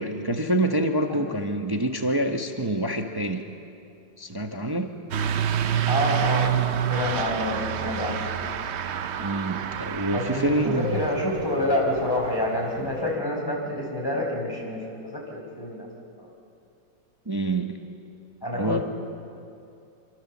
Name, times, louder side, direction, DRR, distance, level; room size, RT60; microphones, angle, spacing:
voice 1, 0.0-3.4 4.2-4.9 9.2-11.0 17.3-17.8 18.5-18.8, right 1 dB, 15° right, 4 dB, 1.0 m, -26 dB
Truck / Accelerating revving vroom, 5.1-13.1, right 9 dB, 60° right, 0.7 m, -28 dB
voice 2, 5.9-8.2 10.1-15.9 16.2-16.3 18.4-18.8, left 1 dB, 10° left, -1 dB, 4.9 m, -28 dB
27.5 x 24.0 x 7.4 m, 2.6 s
omnidirectional pair, 1.9 m